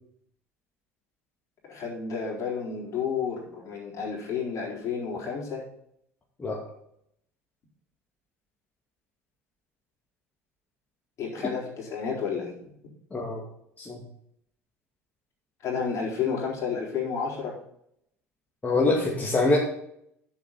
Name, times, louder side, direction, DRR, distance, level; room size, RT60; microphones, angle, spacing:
voice 1, 1.7-5.6 11.2-12.5 15.6-17.6, left 6 dB, 45° left, -3 dB, 4.1 m, -31 dB
voice 2, 13.1-13.4 13.8-14.0 18.6-19.6, left 2 dB, 20° left, -3 dB, 2.4 m, -24 dB
11.0 x 7.3 x 4.3 m, 0.73 s
figure-of-eight pair, 65°, 8 cm